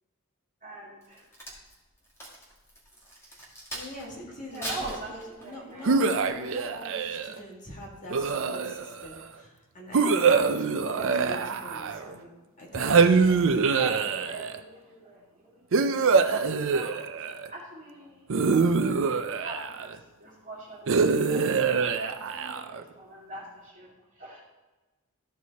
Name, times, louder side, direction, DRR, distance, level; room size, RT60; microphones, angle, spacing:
voice 1, 0.6-1.2 4.5-5.9 11.7-12.1 13.7-19.0 19.4-19.9 20.2-24.4, right 1 dB, 35° right, -5 dB, 2.6 m, -44 dB
Crack, 1.0-4.1 4.5-5.7 6.2-6.5, right 1 dB, 10° left, 2.0 m, -40 dB
voice 2, 3.7-12.3 12.6-13.6, left 1 dB, 35° left, -4 dB, 2.0 m, -43 dB
sound 1, 5.8-7.4 8.1-9.0 9.9-12.1 12.7-14.6 15.7-17.5 18.3-20.0 20.9-22.8, right 5 dB, 60° right, 0.5 m, -24 dB
13.5 x 4.7 x 4.1 m, 1.2 s
head